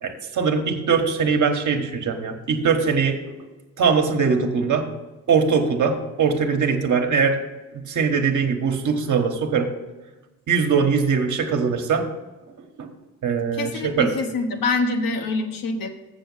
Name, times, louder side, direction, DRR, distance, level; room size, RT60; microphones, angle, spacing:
voice 1, 0.0-3.2 3.8-4.9 5.3-7.4 7.7-9.7 10.5-12.1 12.8-12.9 13.2-14.1, right 5 dB, 50° right, 4 dB, 1.4 m, -21 dB
voice 2, 13.5-15.9, left 3 dB, 60° left, 4 dB, 1.3 m, -25 dB
7.0 x 7.0 x 5.6 m, 1.1 s
hypercardioid pair, 60°, 38 cm